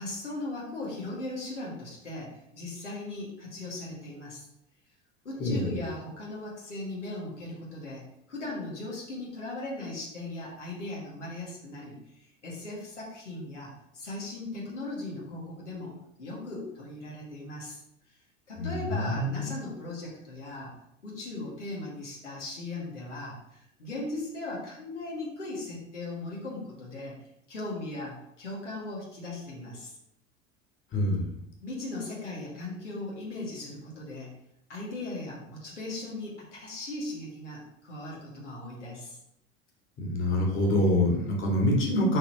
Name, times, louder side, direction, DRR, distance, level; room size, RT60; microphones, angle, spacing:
voice 1, 0.0-4.4 5.2-12.0 12.4-15.9 16.2-17.8 18.5-20.7 21.0-27.2 27.5-29.9 31.6-34.3 34.7-39.2, left 2 dB, 80° left, -5 dB, 2.3 m, -38 dB
voice 2, 18.6-19.5 30.9-31.3 40.0-42.2, left 1 dB, 35° left, -2 dB, 2.3 m, -26 dB
10.5 x 4.3 x 3.0 m, 0.79 s
figure-of-eight pair, 70°, 35 cm